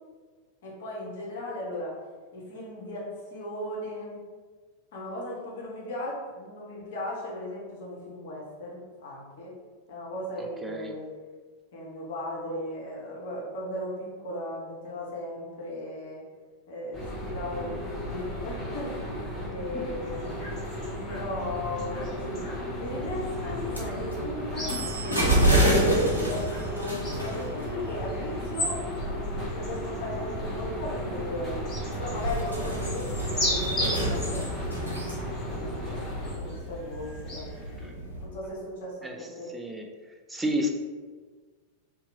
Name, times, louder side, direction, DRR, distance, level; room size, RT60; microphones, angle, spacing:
voice 1, 0.6-1.9 2.3-3.1 3.3-4.2 4.9-9.5 9.9-11.0 11.7-16.2 16.7-18.9 19.5-20.5 21.1-22.4 22.8-24.7 25.0-26.4 26.7-31.6 32.0-34.7 35.4-37.5 37.7-39.1 39.4-39.5, left 1 dB, 55° left, -4 dB, 0.8 m, -37 dB
voice 2, 10.4-11.0 19.4-19.8 37.8-37.9 39.0-39.2 39.5-39.9 40.3-40.7, equal, 10° right, 2 dB, 0.3 m, -32 dB
sound 1, 16.9-36.3, equal, 5° left, 0.8 m, -35 dB
sound 2, 20.0-37.8, left 1 dB, 30° left, 1.4 m, -39 dB
sound 3, 22.8-38.2, right 1 dB, 90° left, 0.6 m, -30 dB
2.7 x 2.3 x 2.6 m, 1.4 s
figure-of-eight pair, 90°, 0 cm